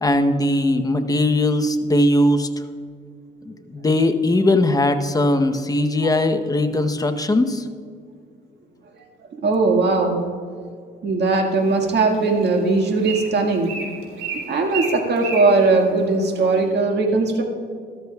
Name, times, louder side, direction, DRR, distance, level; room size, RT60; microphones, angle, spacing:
voice 1, 0.0-2.5 3.5-7.6, left 1 dB, 20° left, 7 dB, 0.9 m, -19 dB
voice 2, 9.4-10.2 11.0-13.7 14.5-17.4, right 3 dB, 55° right, 2 dB, 1.8 m, -19 dB
Bird, 11.5-16.6, right 4 dB, 80° right, 3.1 m, -34 dB
14.0 x 13.5 x 2.4 m, 2.2 s
cardioid pair, 90°, 20 cm